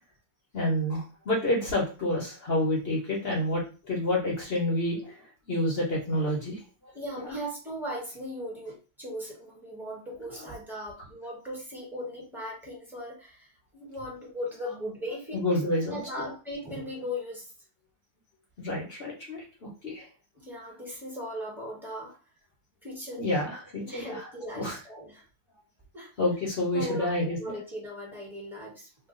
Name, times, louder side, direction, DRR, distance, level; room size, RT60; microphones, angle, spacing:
voice 1, 0.5-6.6 7.2-7.4 10.2-10.6 14.0-14.1 14.6-14.8 15.1-16.1 18.6-20.1 23.2-24.3 24.6-24.8 26.2-27.6, left 1 dB, 45° left, -2 dB, 0.9 m, -29 dB
voice 2, 6.9-15.4 15.7-17.5 20.3-22.1 22.8-23.2 23.8-25.2 25.9-26.1 26.7-28.9, equal, ahead, -3 dB, 0.9 m, -38 dB
2.9 x 2.3 x 3.7 m, 0.35 s
omnidirectional pair, 1.9 m